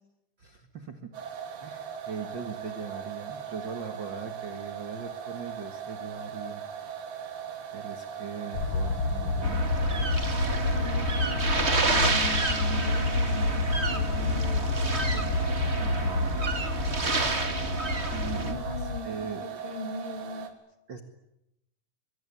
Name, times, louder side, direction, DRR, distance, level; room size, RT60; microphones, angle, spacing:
voice 1, 0.4-1.1 1.6-6.6 7.7-9.7 15.7-16.4 18.1-19.6 20.9-21.0, right 6 dB, 40° right, 7 dB, 1.7 m, -40 dB
sound 1, 1.1-20.5, right 8 dB, 90° right, 4.3 m, -39 dB
sound 2, 8.5-19.0, left 3 dB, 70° left, 1.3 m, -29 dB
sound 3, 9.4-18.5, right 3 dB, 25° right, 1.6 m, -30 dB
voice 2, 10.6-15.3 18.4-20.5, left 4 dB, 35° left, 5 dB, 3.5 m, -40 dB
23.5 x 23.0 x 9.8 m, 0.84 s
omnidirectional pair, 4.4 m